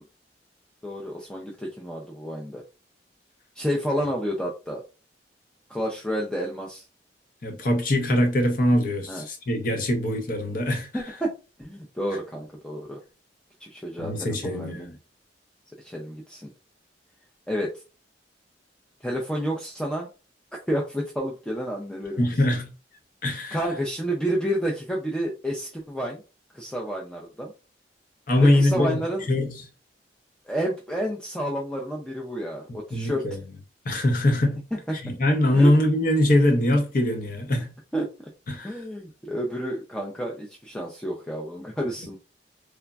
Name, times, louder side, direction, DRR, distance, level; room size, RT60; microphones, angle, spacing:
voice 1, 0.8-2.6 3.6-4.8 5.7-6.8 9.1-9.2 10.9-11.3 11.6-13.0 13.6-14.9 15.8-16.5 17.5-17.7 19.0-20.1 20.7-22.3 23.5-26.2 26.5-27.5 28.4-29.3 30.5-33.3 35.5-35.7 37.9-38.1 38.6-42.2, equal, 5° left, 0.4 m, -30 dB
voice 2, 7.4-10.9 14.0-15.0 22.2-22.7 23.2-23.6 28.3-29.0 29.3-29.6 32.7-33.4 33.9-34.6 34.9-37.7 38.5-38.7, left 1 dB, 50° left, 0.6 m, -22 dB
3.3 x 2.1 x 2.3 m
head